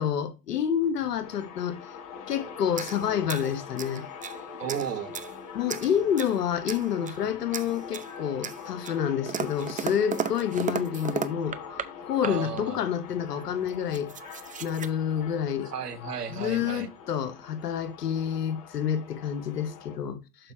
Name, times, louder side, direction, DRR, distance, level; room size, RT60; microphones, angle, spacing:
voice 1, 0.0-1.8 2.3-4.1 5.5-11.6 12.0-14.1 14.6-15.7 16.3-20.5, left 8 dB, 90° left, 1.3 m, -28 dB
sound 1, 1.2-20.0, left 6 dB, 45° left, 4.3 m, -44 dB
sound 2, 2.7-4.4 4.7-5.3 5.7-6.4 6.7-7.2 7.5-8.1 8.4-11.9 12.2-12.7 13.4-13.5 13.7-14.9, right 7 dB, 15° right, 0.7 m, -35 dB
voice 2, 4.6-5.1 12.2-12.8 15.7-16.9, right 7 dB, 90° right, 1.6 m, -34 dB
6.8 x 5.4 x 4.3 m
hypercardioid pair, 95°, 46 cm